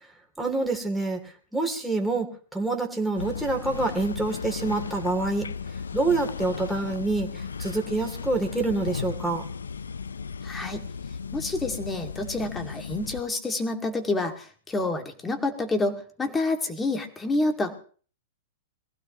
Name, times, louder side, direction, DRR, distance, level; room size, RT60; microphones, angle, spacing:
voice 1, 0.4-1.2 1.5-5.5 5.9-9.4, right 3 dB, ahead, 0 dB, 2.9 m, -27 dB
sound 1, 3.2-13.2, left 5 dB, 85° left, 0.6 m, -35 dB
voice 2, 10.4-10.8 11.3-17.7, left 2 dB, 15° left, 5 dB, 2.4 m, -28 dB
23.5 x 15.5 x 3.1 m, 0.42 s
hypercardioid pair, 110°, 0 cm